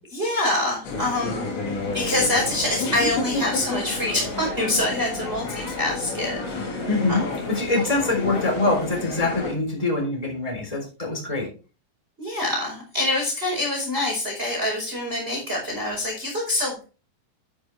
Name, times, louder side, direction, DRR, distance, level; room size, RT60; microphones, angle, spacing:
voice 1, 0.1-1.5 1.9-6.8 7.1-7.2 12.2-16.8, left 1 dB, 15° right, -1 dB, 4.4 m, -25 dB
sound 1, 0.8-9.5, left 3 dB, 70° left, 4.9 m, -30 dB
voice 2, 6.8-7.2 7.5-11.5, left 2 dB, 10° left, 0 dB, 3.1 m, -24 dB
11.0 x 8.1 x 3.4 m, 0.34 s
omnidirectional pair, 5.3 m